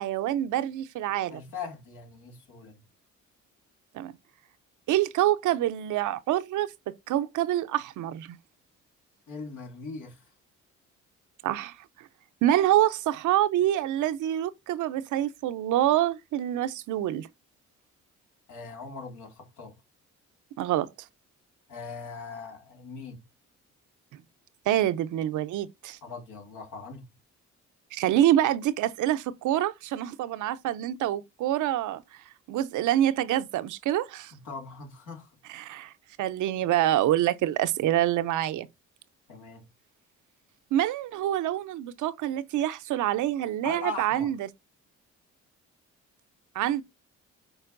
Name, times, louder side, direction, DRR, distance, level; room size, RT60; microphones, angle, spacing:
voice 1, 0.0-1.4 3.9-4.1 4.9-8.4 11.4-12.1 12.4-17.3 20.6-20.9 24.7-26.0 27.9-32.0 32.5-34.3 35.5-35.9 36.2-38.7 40.7-44.5 46.5-46.8, right 12 dB, 80° right, 0.6 m, -26 dB
voice 2, 1.3-2.8 9.3-10.2 18.5-19.7 21.7-23.2 26.0-27.0 34.3-35.3 39.3-39.7 43.6-44.3, left 4 dB, 80° left, 2.3 m, -40 dB
8.8 x 4.4 x 2.5 m
cardioid pair, 90°, 30 cm